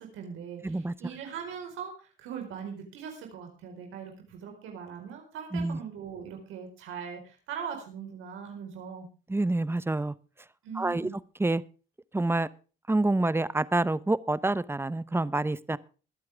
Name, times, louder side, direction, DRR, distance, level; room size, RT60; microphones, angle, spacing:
voice 1, 0.0-9.1 10.6-11.2, right 7 dB, 90° right, 3 dB, 4.5 m, -40 dB
voice 2, 0.6-0.9 5.5-5.8 9.3-10.1 10.8-11.1 11.4-11.6 12.1-12.5 12.9-15.8, right 2 dB, 10° right, 17 dB, 0.9 m, -27 dB
23.0 x 8.6 x 3.5 m, 0.36 s
cardioid pair, 90°, 20 cm